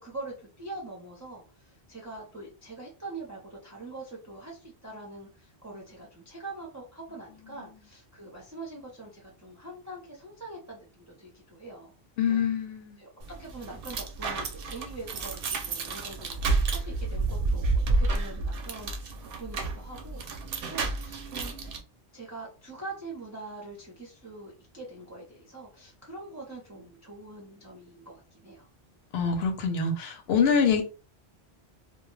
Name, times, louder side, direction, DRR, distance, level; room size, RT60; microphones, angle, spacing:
voice 1, 0.0-11.9 12.3-12.4 13.0-13.1 13.4-21.6 22.1-28.7, right 2 dB, 20° right, 0.5 m, -43 dB
voice 2, 12.2-13.0 29.1-30.8, left 6 dB, 75° left, 0.9 m, -25 dB
sound 1, 13.2-21.8, right 3 dB, 65° right, 0.7 m, -30 dB
2.3 x 2.1 x 3.1 m
omnidirectional pair, 1.1 m